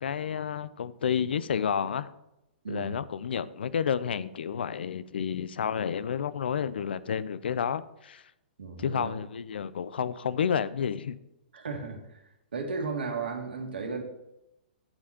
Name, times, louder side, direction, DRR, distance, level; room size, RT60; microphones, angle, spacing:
voice 1, 0.0-2.1 2.7-8.2 8.8-11.2, left 7 dB, 80° left, 0.5 m, -30 dB
voice 2, 2.6-3.0 8.6-9.2 11.5-14.0, right 4 dB, 85° right, 1.8 m, -35 dB
8.8 x 4.2 x 7.3 m
hypercardioid pair, 125°, 5 cm